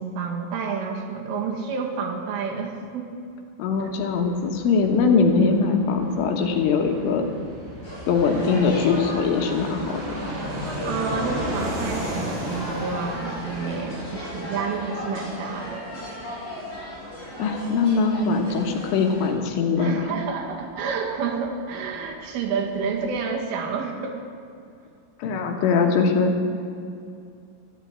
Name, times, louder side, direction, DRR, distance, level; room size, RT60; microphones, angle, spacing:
voice 1, 0.0-3.1 3.8-3.9 10.9-16.0 18.5-18.7 19.8-24.2 25.8-26.0, right 5 dB, 80° right, 1 dB, 4.2 m, -29 dB
voice 2, 3.6-7.3 8.1-10.0 17.4-20.1 25.2-26.3, left 5 dB, 75° left, 4 dB, 3.8 m, -21 dB
Fixed-wing aircraft airplane, 3.7-22.1 22.4-22.5 22.7-23.4, equal, 55° right, 5.6 m, -36 dB
sound 1, 7.8-19.3, equal, 15° left, 5.4 m, -36 dB
14.0 x 12.0 x 8.6 m, 2.5 s
omnidirectional pair, 5.8 m